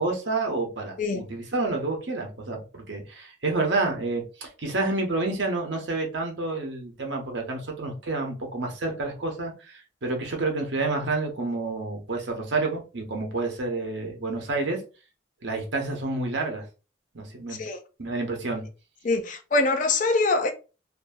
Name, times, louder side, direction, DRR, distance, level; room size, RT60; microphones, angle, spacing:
voice 1, 0.0-14.8 15.4-16.7 17.1-17.6 18.0-18.6, right 3 dB, 65° right, 0.9 m, -29 dB
voice 2, 19.0-20.5, left 3 dB, 40° left, 0.4 m, -24 dB
2.7 x 2.6 x 2.3 m
head